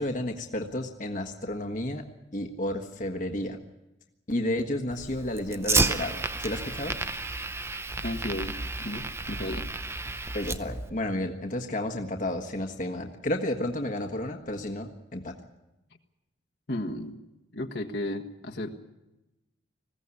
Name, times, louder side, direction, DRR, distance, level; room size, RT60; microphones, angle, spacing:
voice 1, 0.0-2.1 2.3-3.6 4.3-6.9 10.3-15.3, left 1 dB, 45° left, 3 dB, 1.4 m, -31 dB
Fire, 4.9-10.9, right 3 dB, 15° right, 0.7 m, -31 dB
voice 2, 8.0-9.7 16.7-17.2 17.5-18.7, left 1 dB, 60° left, 2 dB, 1.6 m, -34 dB
20.5 x 16.0 x 9.7 m, 0.97 s
head